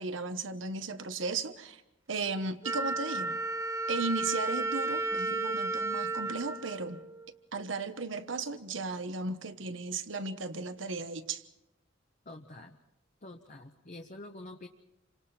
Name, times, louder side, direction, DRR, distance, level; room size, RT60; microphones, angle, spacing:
voice 1, 0.0-1.8 2.1-3.4 3.9-7.0 7.5-11.4, right 3 dB, 80° right, 1.3 m, -35 dB
Wind instrument woodwind instrument, 2.6-7.4, right 2 dB, 15° right, 0.9 m, -33 dB
voice 2, 12.2-12.8 13.2-14.7, left 2 dB, 40° left, 1.1 m, -47 dB
29.0 x 25.5 x 4.4 m
head